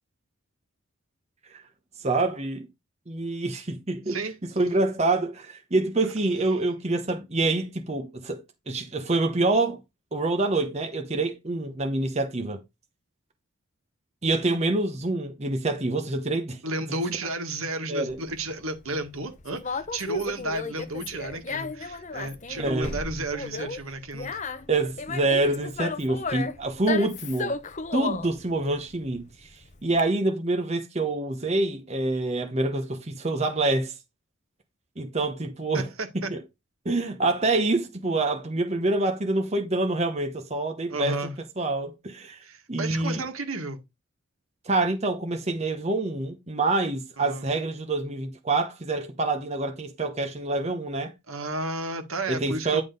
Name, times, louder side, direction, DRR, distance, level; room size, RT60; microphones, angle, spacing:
voice 1, 2.0-2.7 3.1-4.2 4.6-9.8 10.1-12.6 14.2-16.6 16.9-17.0 17.9-18.2 22.6-23.0 24.7-27.5 27.9-29.5 29.8-34.0 35.0-35.9 36.3-36.4 36.8-41.2 41.6-42.4 42.7-43.2 44.6-51.1 52.3-52.8, right 2 dB, 30° right, 0.9 m, -26 dB
voice 2, 4.1-4.4 6.5-6.6 16.6-24.4 35.7-36.3 40.9-41.3 42.4-43.8 47.2-47.5 51.3-52.8, right 2 dB, 80° right, 1.8 m, -32 dB
Conversation, 18.1-30.0, left 4 dB, 35° left, 0.7 m, -34 dB
10.0 x 3.7 x 5.3 m
head